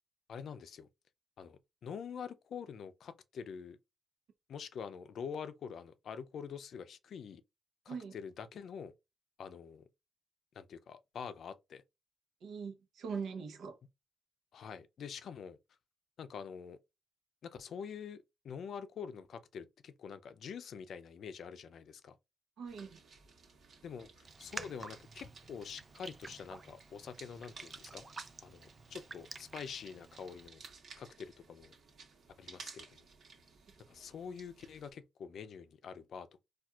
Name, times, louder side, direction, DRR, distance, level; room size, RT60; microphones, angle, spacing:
voice 1, 0.3-0.9 1.4-3.8 4.5-7.4 7.9-8.9 9.4-9.9 10.5-11.8 14.5-15.6 16.2-16.8 17.4-22.2 23.8-28.1 28.4-30.6 31.0-31.7 32.4-33.0 33.9-36.4, left 6 dB, 70° left, 0.4 m, -46 dB
voice 2, 12.4-13.8 22.6-23.0, right 5 dB, 80° right, 0.8 m, -41 dB
sound 1, 22.7-34.9, right 4 dB, 65° right, 1.3 m, -56 dB
Raindrop, 24.2-30.5, right 3 dB, 25° right, 0.4 m, -50 dB
4.3 x 2.4 x 2.3 m
cardioid pair, 105°, 0 cm